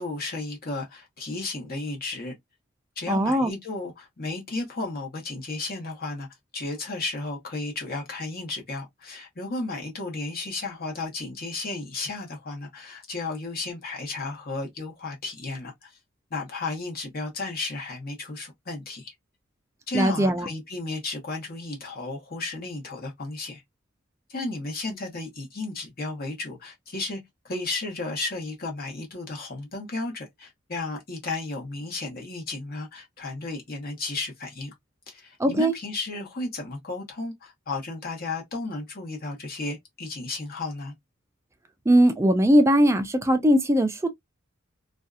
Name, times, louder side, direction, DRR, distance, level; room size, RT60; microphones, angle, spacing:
voice 1, 0.0-2.3 3.0-6.3 6.5-15.9 16.3-19.1 19.9-23.6 24.3-27.2 27.4-34.7 35.1-40.9, left 2 dB, 45° left, 1.0 m, -33 dB
voice 2, 3.1-3.5 19.9-20.5 35.4-35.7 41.9-44.1, equal, 15° right, 0.4 m, -20 dB
2.6 x 2.4 x 2.3 m
head